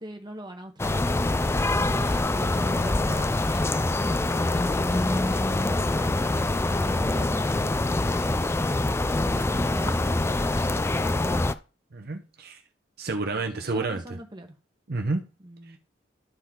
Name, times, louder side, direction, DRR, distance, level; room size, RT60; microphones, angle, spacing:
voice 1, 0.0-1.3 1.8-8.5 9.1-11.4 13.3-14.5 15.4-15.8, right 1 dB, 25° right, 4 dB, 1.4 m, -42 dB
sound 1, 0.8-11.5, left 2 dB, 15° left, 0.4 m, -25 dB
voice 2, 11.9-12.6 13.0-14.0 14.9-15.2, right 3 dB, 60° right, 5 dB, 0.8 m, -29 dB
12.0 x 4.4 x 3.8 m, 0.33 s
head